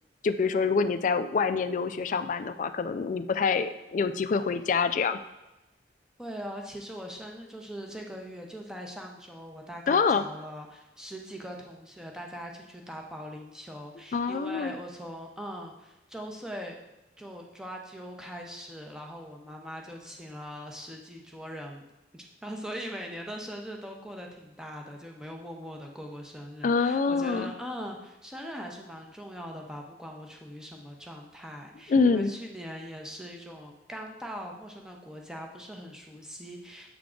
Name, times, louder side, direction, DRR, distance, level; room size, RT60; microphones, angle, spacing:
voice 1, 0.2-5.2 9.9-10.2 14.1-14.8 26.6-27.5 31.9-32.3, left 5 dB, 45° left, 11 dB, 0.3 m, -26 dB
voice 2, 6.2-16.8 17.2-21.9 22.1-36.9, equal, 5° right, 1 dB, 0.7 m, -41 dB
7.6 x 3.7 x 3.7 m, 1.0 s
head